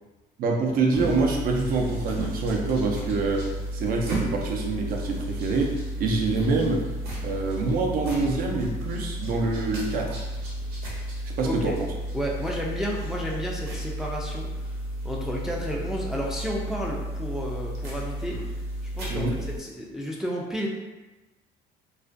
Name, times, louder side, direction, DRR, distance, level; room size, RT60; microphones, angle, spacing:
voice 1, 0.4-3.4 3.7-5.7 6.0-6.8 7.2-10.2 11.4-11.7 19.1-19.3, right 3 dB, 60° right, 1 dB, 0.5 m, -25 dB
sound 1, 0.9-19.6, right 1 dB, 80° right, 0.8 m, -33 dB
voice 2, 11.4-11.8 12.1-14.8 15.0-18.4 18.9-20.7, equal, 5° right, -3 dB, 0.3 m, -32 dB
2.4 x 2.1 x 2.4 m, 1.1 s
cardioid pair, 110°, 17 cm